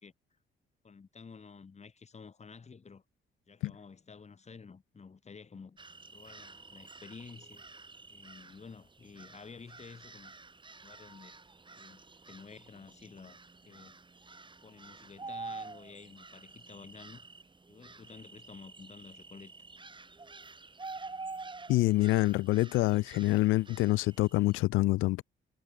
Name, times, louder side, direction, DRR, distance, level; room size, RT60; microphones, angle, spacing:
voice 1, 0.8-3.0 3.5-5.8 6.1-7.6 8.1-10.5 10.8-11.3 11.7-14.0 14.6-17.3 17.7-19.5 23.2-23.5, left 5 dB, 35° left, 3.3 m, -51 dB
sound 1, 5.8-24.6, right 3 dB, 25° right, 4.5 m, -49 dB
voice 2, 21.7-25.2, left 18 dB, 85° left, 0.5 m, -26 dB
cardioid pair, 90°, 20 cm